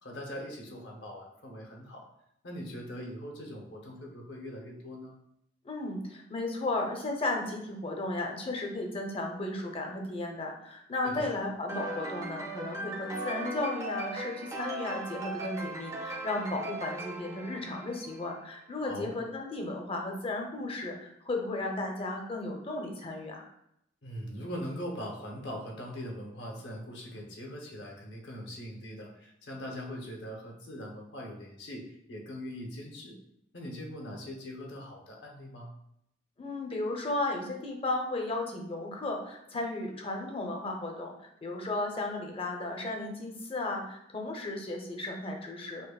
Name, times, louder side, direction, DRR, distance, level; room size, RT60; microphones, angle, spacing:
voice 1, 0.0-2.1 2.4-5.2 11.0-11.3 18.8-19.1 24.0-33.2 33.5-35.7, equal, 65° left, -1 dB, 0.9 m, -41 dB
voice 2, 5.6-23.5 36.4-41.1 41.4-45.9, left 2 dB, 30° left, 1 dB, 0.6 m, -34 dB
sound 1, 11.7-18.3, right 2 dB, 15° right, 0.4 m, -38 dB
5.3 x 2.1 x 2.3 m, 0.77 s
head